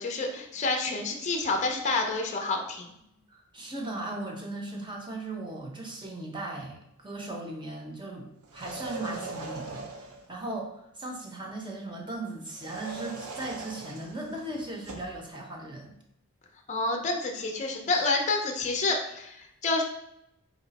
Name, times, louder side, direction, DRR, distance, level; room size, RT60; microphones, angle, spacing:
voice 1, 0.0-2.9 16.7-19.8, left 3 dB, 35° left, 2 dB, 0.6 m, -28 dB
voice 2, 3.3-8.3 8.5-9.9 10.3-16.0, right 2 dB, 20° right, 0 dB, 0.8 m, -37 dB
sound 1, 8.4-10.3 12.5-15.2, right 3 dB, 75° right, 0.8 m, -41 dB
4.2 x 3.1 x 4.1 m, 0.80 s
head